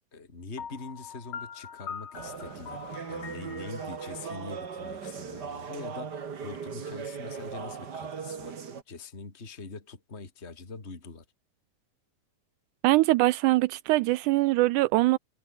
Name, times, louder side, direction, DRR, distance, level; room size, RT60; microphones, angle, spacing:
voice 1, 0.1-8.6 8.9-11.2, left 4 dB, 20° left, 3.1 m, -43 dB
Piano, 0.6-5.4, left 7 dB, 60° left, 4.3 m, -43 dB
sound 1, 2.1-8.8, right 6 dB, 35° right, 1.9 m, -38 dB
voice 2, 12.8-15.2, right 19 dB, 85° right, 1.8 m, -22 dB
omnidirectional pair, 4.0 m